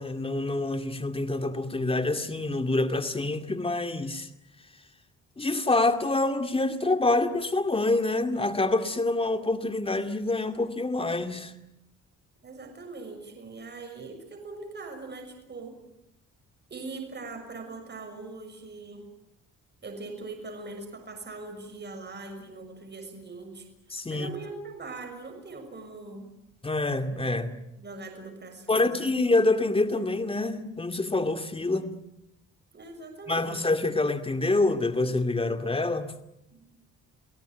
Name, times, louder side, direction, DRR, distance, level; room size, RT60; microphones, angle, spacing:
voice 1, 0.0-4.3 5.4-11.5 23.9-24.3 26.6-27.5 28.7-32.0 33.3-36.1, left 2 dB, 20° left, 8 dB, 2.4 m, -26 dB
voice 2, 12.4-15.8 16.7-19.1 19.8-23.7 23.9-26.3 27.8-29.1 32.7-33.5 36.5-36.6, right 3 dB, 35° right, 4 dB, 6.5 m, -41 dB
29.0 x 17.5 x 9.2 m, 0.85 s
cardioid pair, 90°, 30 cm